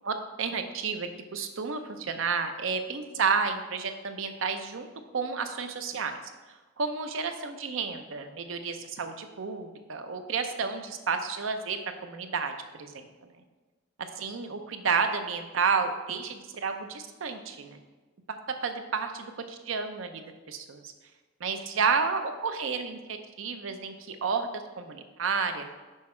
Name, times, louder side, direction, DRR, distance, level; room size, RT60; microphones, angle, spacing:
voice 1, 0.0-4.9 5.1-6.2 6.8-13.3 14.2-17.8 18.3-20.9 21.4-24.5 24.8-25.7, right 5 dB, 75° right, 8 dB, 0.6 m, -31 dB
6.3 x 4.7 x 4.3 m, 1.3 s
head